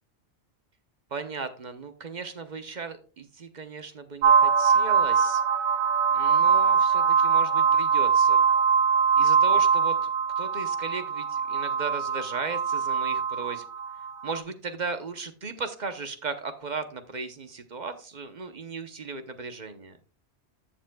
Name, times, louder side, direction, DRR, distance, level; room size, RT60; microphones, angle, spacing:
voice 1, 1.1-5.4 6.1-8.4 9.2-10.0 10.4-13.6 14.2-20.0, right 4 dB, 45° right, 9 dB, 0.9 m, -36 dB
sound 1, 4.2-14.4, right 6 dB, 85° right, 1.2 m, -22 dB
13.5 x 7.2 x 2.2 m, 0.36 s
omnidirectional pair, 1.1 m